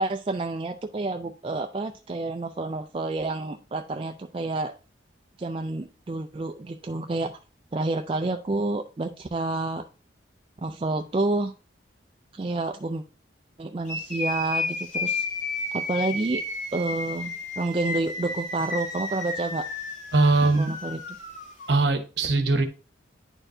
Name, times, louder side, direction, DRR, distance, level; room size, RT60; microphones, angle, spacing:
voice 1, 0.0-4.8 5.4-7.4 7.7-9.9 10.6-11.5 12.3-13.0 13.6-15.3 15.7-16.4 16.7-19.7 20.6-21.0, right 2 dB, 30° right, 5 dB, 0.3 m, -29 dB
sound 1, 13.9-21.8, left 3 dB, 40° left, 1.8 m, -32 dB
voice 2, 20.1-20.8 21.7-22.7, right 3 dB, 65° right, 8 dB, 1.0 m, -21 dB
9.8 x 4.5 x 2.6 m, 0.33 s
head